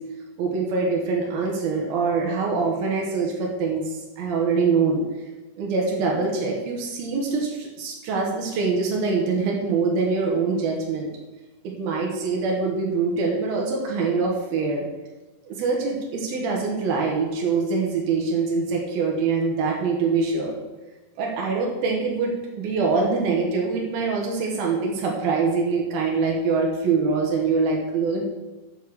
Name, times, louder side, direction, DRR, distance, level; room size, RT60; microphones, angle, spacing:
voice 1, 0.4-5.0 5.6-11.1 11.6-14.8 15.5-20.6 21.2-28.2, right 4 dB, 90° right, -1 dB, 3.3 m, -24 dB
9.2 x 6.4 x 6.7 m, 1.1 s
omnidirectional pair, 4.1 m